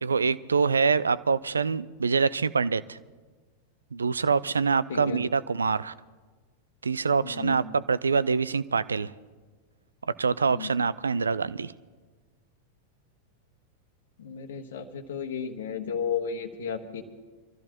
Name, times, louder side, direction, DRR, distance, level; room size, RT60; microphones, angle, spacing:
voice 1, 0.0-3.0 3.9-5.9 6.8-9.1 10.2-11.7, right 5 dB, 75° right, 17 dB, 0.3 m, -25 dB
voice 2, 4.9-5.2 7.2-7.6 10.5-10.7 14.2-17.0, left 7 dB, 60° left, 5 dB, 1.3 m, -33 dB
25.0 x 13.5 x 3.0 m, 1.4 s
figure-of-eight pair, 90°, 0 cm